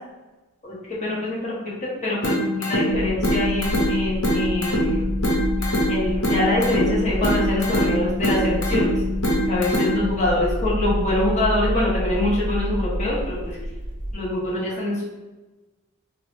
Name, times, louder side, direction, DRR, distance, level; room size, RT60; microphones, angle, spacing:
voice 1, 1.0-5.2 5.6-8.9 9.5-13.6 14.1-15.0, left 1 dB, 30° left, -6 dB, 1.0 m, -25 dB
sound 1, 2.2-10.2, equal, 70° left, 0.9 m, -23 dB
sound 2, 2.9-14.1, equal, 55° left, 0.6 m, -29 dB
3.6 x 2.0 x 3.1 m, 1.1 s
head